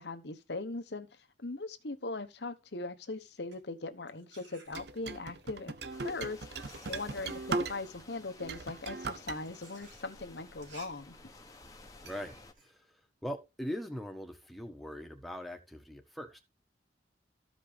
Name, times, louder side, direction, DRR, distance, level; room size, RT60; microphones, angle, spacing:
voice 1, 0.0-5.7 6.0-11.2, left 3 dB, 70° left, 1.1 m, -40 dB
sound 1, 3.2-5.2 6.0-13.9, right 4 dB, 85° right, 3.5 m, -59 dB
sound 2, 4.7-8.0 8.4-9.4, right 3 dB, 65° right, 0.7 m, -38 dB
sound 3, 5.9-12.5, left 3 dB, 20° left, 1.0 m, -54 dB
voice 2, 12.0-16.4, equal, ahead, 1.3 m, -41 dB
14.0 x 5.3 x 3.4 m
head